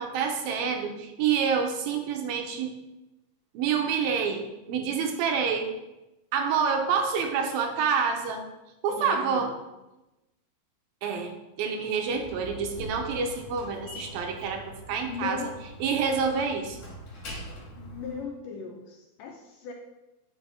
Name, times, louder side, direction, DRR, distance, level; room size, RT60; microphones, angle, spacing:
voice 1, 0.0-2.7 3.5-5.8 6.3-8.4 8.8-9.5 11.0-11.3 11.6-15.4 15.8-16.8, right 6 dB, 80° right, 4 dB, 2.5 m, -27 dB
voice 2, 8.9-9.7 12.4-12.8 15.1-15.6 17.8-19.7, left 6 dB, 75° left, 1 dB, 2.1 m, -38 dB
Slam, 12.0-18.2, right 1 dB, 50° left, 2.1 m, -43 dB
9.7 x 4.9 x 3.5 m, 0.97 s
omnidirectional pair, 4.4 m